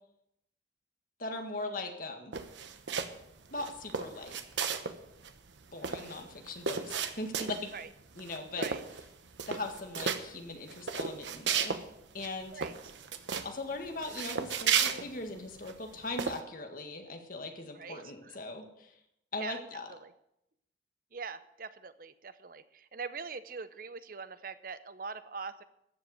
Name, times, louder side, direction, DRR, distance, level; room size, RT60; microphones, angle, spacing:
voice 1, 1.2-2.3 3.5-4.4 5.7-7.7 8.2-8.7 9.5-11.8 12.1-12.6 13.4-18.9 19.3-19.9, left 2 dB, 50° left, 5 dB, 1.8 m, -40 dB
sound 1, 2.3-3.2 3.6-5.0 5.2-5.3 5.6-7.8 8.2-8.4 8.6-9.1 9.3-10.2 10.7-11.8 12.2-12.3 12.6-13.5 14.0-15.7 16.2-16.4, right 6 dB, 85° right, 1.0 m, -33 dB
voice 2, 17.8-18.4 19.4-19.6 19.9-20.1 21.1-25.6, right 5 dB, 50° right, 13 dB, 0.7 m, -42 dB
13.5 x 7.8 x 7.9 m, 0.80 s
head